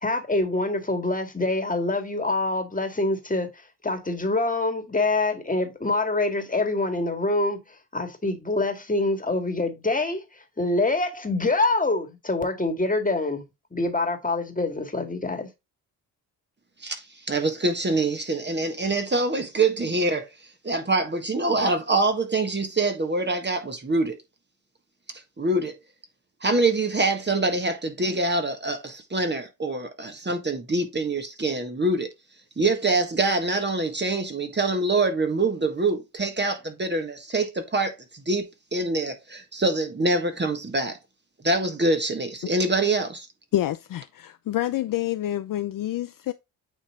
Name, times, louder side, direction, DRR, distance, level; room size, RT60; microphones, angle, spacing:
voice 1, 0.0-3.5 3.8-7.6 7.9-10.2 10.6-13.4 13.7-15.5, left 2 dB, 20° left, 1.9 m, -25 dB
voice 2, 16.8-20.3 20.6-24.2 25.4-25.8 26.4-32.1 32.6-38.4 38.7-41.0 41.4-43.3, right 2 dB, 25° right, 1.6 m, -25 dB
voice 3, 43.5-46.3, left 13 dB, 50° left, 0.5 m, -27 dB
8.9 x 3.1 x 3.7 m
hypercardioid pair, 50°, 43 cm